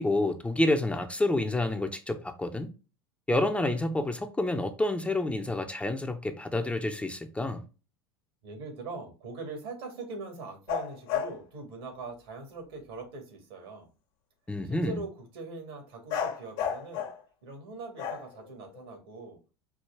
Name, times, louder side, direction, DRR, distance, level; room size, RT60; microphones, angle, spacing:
voice 1, 0.0-2.7 3.3-7.6 14.5-15.0, left 2 dB, 10° left, 0.5 m, -28 dB
voice 2, 8.4-13.9 14.6-17.1 17.4-19.4, right 3 dB, 75° right, 1.8 m, -42 dB
sound 1, 10.7-11.4 16.1-17.2 18.0-19.0, left 8 dB, 60° left, 1.0 m, -32 dB
4.7 x 2.3 x 4.5 m
hypercardioid pair, 90°, 13 cm